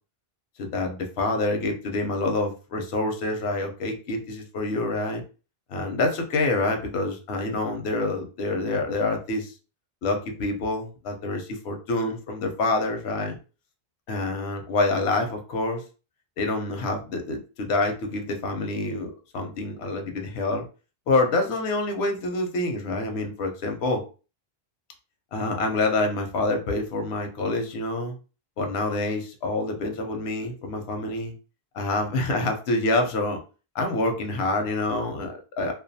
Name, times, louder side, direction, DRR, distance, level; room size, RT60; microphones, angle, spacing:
voice 1, 0.6-5.2 5.7-9.5 10.0-13.4 14.1-15.8 16.4-20.6 21.1-24.0 25.3-28.2 28.6-31.4 31.7-33.4 33.7-35.7, left 2 dB, 85° left, 4 dB, 0.8 m, -27 dB
2.3 x 2.2 x 2.6 m, 0.34 s
omnidirectional pair, 1.1 m